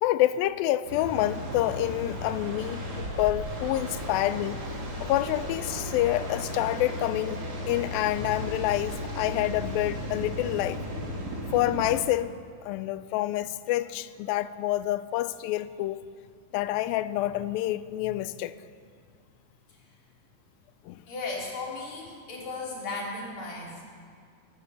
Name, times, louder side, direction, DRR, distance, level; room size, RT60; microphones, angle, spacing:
voice 1, 0.0-4.6 5.0-7.4 7.7-10.8 11.5-12.3 12.6-16.1 16.5-18.5 20.9-21.0, left 14 dB, 90° left, 2.4 m, -27 dB
sound 1, 0.8-12.0, equal, 30° right, 2.3 m, -35 dB
voice 2, 21.1-23.8, left 3 dB, 50° left, 4.2 m, -36 dB
20.5 x 9.7 x 6.9 m
omnidirectional pair, 4.1 m